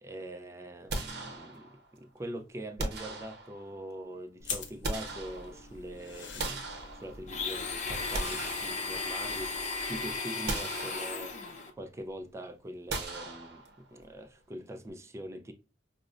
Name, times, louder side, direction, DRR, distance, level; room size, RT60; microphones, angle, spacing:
voice 1, 0.0-6.7 7.0-13.6 13.9-15.5, right 1 dB, 15° right, 0.4 m, -43 dB
sound 1, 0.9-1.9 2.8-3.8 4.5-5.8 6.4-7.5 7.9-9.4 9.8-9.9 10.5-11.5 12.9-14.0, right 2 dB, 65° right, 0.7 m, -39 dB
sound 2, 4.4-10.2, left 5 dB, 90° left, 0.7 m, -45 dB
Domestic sounds home sounds, 7.3-11.7, left 4 dB, 40° left, 0.6 m, -35 dB
5.0 x 2.0 x 2.4 m
head